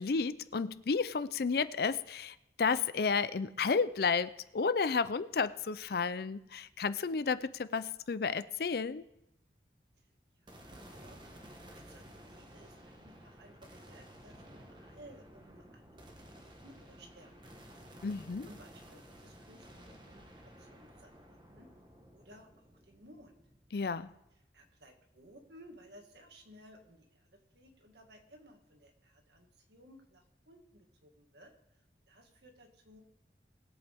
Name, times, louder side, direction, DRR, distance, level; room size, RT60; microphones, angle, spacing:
voice 1, 0.0-9.0 18.0-18.5 23.7-24.1, left 5 dB, 55° left, 15 dB, 0.5 m, -32 dB
voice 2, 10.4-17.8 18.4-21.7 22.1-23.3 24.5-31.5 32.1-33.0, equal, 70° right, 3 dB, 1.9 m, -58 dB
sound 1, 10.5-24.8, equal, 25° right, 1.3 m, -54 dB
20.5 x 8.2 x 3.5 m, 0.88 s
head